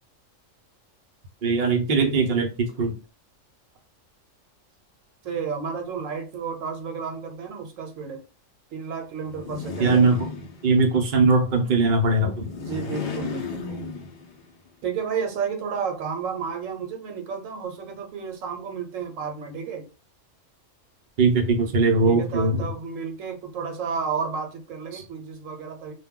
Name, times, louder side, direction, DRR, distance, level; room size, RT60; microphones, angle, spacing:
voice 1, 1.4-2.9 9.8-10.3 10.6-12.5 21.2-22.7 24.9-25.0, right 3 dB, 50° right, 0.6 m, -20 dB
voice 2, 5.2-8.2 8.7-10.0 12.6-13.9 14.8-19.9 22.0-25.9, right 6 dB, 80° right, 1.0 m, -32 dB
sound 1, 9.2-11.0 12.3-14.5, left 3 dB, 55° left, 0.5 m, -34 dB
2.2 x 2.2 x 3.6 m
omnidirectional pair, 1.3 m